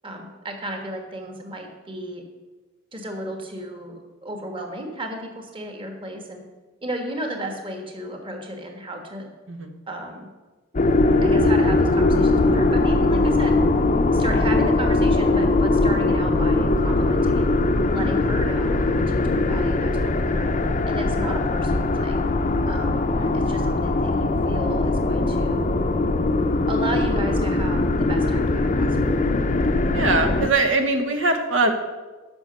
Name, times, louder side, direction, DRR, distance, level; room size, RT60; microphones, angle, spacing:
voice 1, 0.0-2.2 2.9-6.4 6.8-9.3 9.9-10.3 11.2-13.6 14.1-17.5 17.9-20.5 20.9-22.2 22.7-25.7 26.7-29.2, right 1 dB, 25° right, 3 dB, 1.5 m, -34 dB
sound 1, 10.7-30.5, left 2 dB, 40° left, 0.6 m, -21 dB
voice 2, 29.9-31.7, right 3 dB, 80° right, 6 dB, 1.4 m, -22 dB
10.5 x 6.1 x 6.8 m, 1.2 s
head